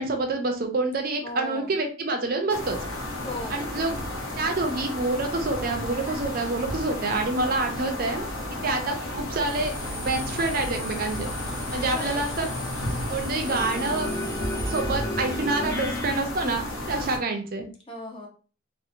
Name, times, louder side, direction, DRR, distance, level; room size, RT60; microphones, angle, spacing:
voice 1, 0.0-2.8 3.5-4.0 4.4-8.3 8.6-9.7 10.1-11.3 11.7-12.5 13.1-14.1 14.7-17.7, right 2 dB, 45° right, 4 dB, 0.4 m, -27 dB
voice 2, 1.2-1.8 3.2-3.7 11.7-12.3 17.9-18.3, left 1 dB, 25° left, 1 dB, 0.5 m, -37 dB
sound 1, 2.5-17.2, left 1 dB, 85° left, 0.8 m, -33 dB
sound 2, 9.5-16.2, left 2 dB, 50° left, 0.9 m, -36 dB
sound 3, 9.5-14.8, equal, ahead, 0.8 m, -39 dB
2.7 x 2.1 x 2.4 m, 0.38 s
head